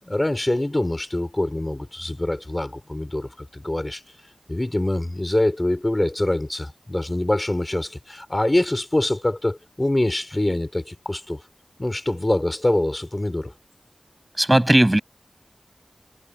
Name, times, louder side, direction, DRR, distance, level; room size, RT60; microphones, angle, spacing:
voice 1, 0.0-4.0 4.5-11.4 11.8-13.5, left 1 dB, 25° left, 5.3 m, -24 dB
voice 2, 14.4-15.0, right 1 dB, 20° right, 7.6 m, -16 dB
wide cardioid pair, 50°, 0 cm